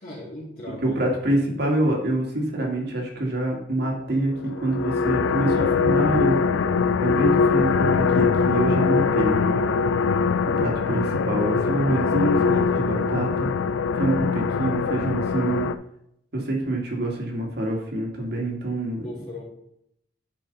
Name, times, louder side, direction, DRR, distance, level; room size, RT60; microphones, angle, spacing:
voice 1, 0.0-1.0 19.0-19.4, left 1 dB, 45° left, -9 dB, 2.3 m, -37 dB
voice 2, 0.8-4.3 4.6-6.4 7.0-9.6 10.6-13.5 13.9-15.7 16.3-19.1, right 1 dB, 60° right, 0 dB, 2.0 m, -26 dB
sound 1, 4.4-15.7, left 5 dB, 85° left, 0.4 m, -22 dB
9.4 x 4.6 x 4.0 m, 0.76 s
head